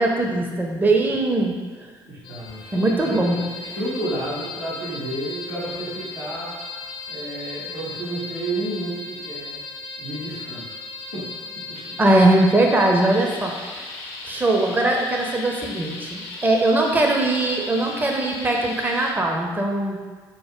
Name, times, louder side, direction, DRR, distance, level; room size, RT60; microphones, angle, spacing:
voice 1, 0.0-1.6 2.7-3.4 12.0-13.9 14.2-20.0, right 2 dB, 15° right, 1 dB, 0.5 m, -20 dB
voice 2, 2.1-6.6 7.1-9.6 10.0-10.8 11.1-11.3 11.7-12.0, right 1 dB, 85° right, -10 dB, 1.2 m, -31 dB
sound 1, 2.2-19.1, left 3 dB, 60° left, 0.6 m, -36 dB
4.3 x 2.1 x 3.4 m, 1.4 s
figure-of-eight pair, 50°, 12 cm